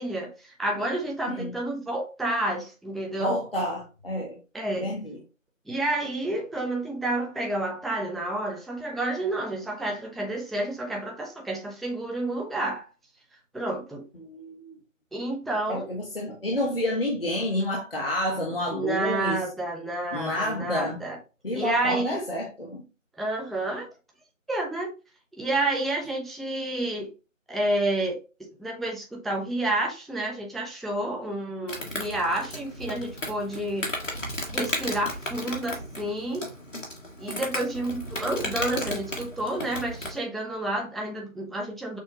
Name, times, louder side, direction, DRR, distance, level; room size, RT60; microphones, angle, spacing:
voice 1, 0.0-3.4 4.5-4.9 5.7-12.9 13.5-14.0 15.1-15.9 18.7-21.2 21.5-22.2 23.2-23.9 24.5-24.9 25.3-27.1 27.5-28.2 28.6-33.9 34.5-36.4 37.2-42.0, right 1 dB, ahead, 0.5 m, -29 dB
voice 2, 3.2-4.4 4.8-5.2 14.2-14.7 15.7-19.4 20.1-21.0 21.4-22.8, left 1 dB, 45° left, 1.0 m, -29 dB
Insect, 31.7-40.2, left 1 dB, 70° left, 1.6 m, -34 dB
6.2 x 2.3 x 2.8 m
figure-of-eight pair, 170°, 40 cm